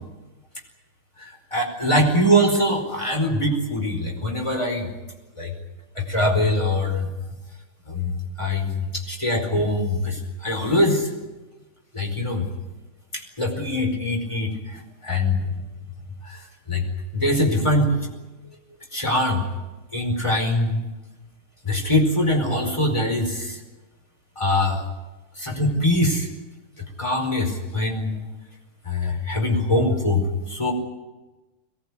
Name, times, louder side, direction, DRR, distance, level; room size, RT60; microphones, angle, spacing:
voice 1, 1.2-4.9 5.4-5.5 5.9-7.1 7.9-8.1 8.4-11.1 11.9-12.5 13.1-15.4 16.2-16.4 16.7-16.9 17.1-17.9 18.9-19.4 19.9-20.8 21.6-23.6 24.4-24.8 25.4-26.3 27.0-28.1 28.8-30.7, left 1 dB, 15° left, 2 dB, 4.9 m, -23 dB
22.5 x 19.5 x 10.0 m, 1.1 s
omnidirectional pair, 2.4 m